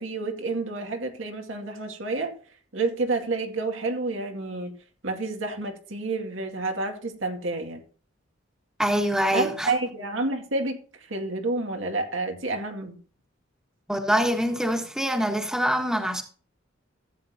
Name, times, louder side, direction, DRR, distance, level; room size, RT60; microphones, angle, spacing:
voice 1, 0.0-2.3 2.7-4.7 5.0-7.8 9.3-10.8 11.1-13.0, right 3 dB, 85° right, 2.3 m, -29 dB
voice 2, 8.8-9.7 13.9-16.2, equal, 5° right, 1.4 m, -24 dB
15.0 x 8.6 x 2.8 m
head